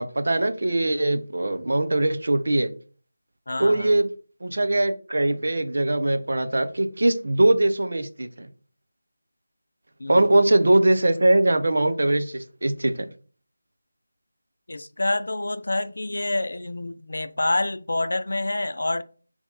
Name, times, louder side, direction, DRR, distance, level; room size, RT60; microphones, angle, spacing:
voice 1, 0.0-2.7 3.6-4.1 4.4-8.5 10.1-13.1, right 1 dB, 65° right, 0.6 m, -21 dB
voice 2, 3.5-3.9 10.0-10.3 14.7-19.0, left 2 dB, 70° left, 0.5 m, -27 dB
4.3 x 2.9 x 3.9 m
figure-of-eight pair, 175°, 0 cm